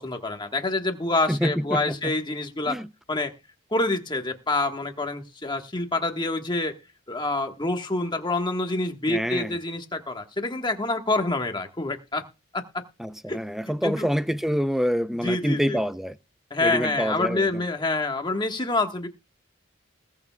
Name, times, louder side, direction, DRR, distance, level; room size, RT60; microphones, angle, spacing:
voice 1, 0.0-2.8 3.1-3.3 3.7-6.7 7.1-12.2 12.5-12.8 13.3-13.4 13.8-14.1 15.2-15.8 16.5-19.1, left 2 dB, 20° left, 1.3 m, -27 dB
voice 2, 1.3-2.1 2.7-2.9 9.1-9.6 13.0-16.2 16.6-17.5, equal, ahead, 0.4 m, -26 dB
20.5 x 7.1 x 2.2 m
head